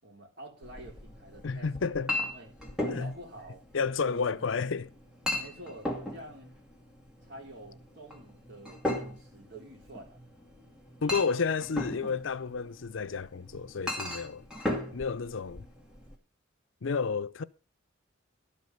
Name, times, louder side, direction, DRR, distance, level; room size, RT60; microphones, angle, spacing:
voice 1, 0.0-1.7 2.2-2.5 3.0-3.6 4.0-4.5 5.4-6.5 7.2-10.2, right 1 dB, 60° right, 4.3 m, -48 dB
Chink clink, 0.6-16.2, left 1 dB, 5° right, 2.3 m, -38 dB
voice 2, 1.4-2.1 2.8-3.1 3.7-4.9 11.0-14.5 14.9-15.6 16.8-17.4, left 5 dB, 70° left, 0.6 m, -31 dB
12.5 x 5.4 x 7.8 m
head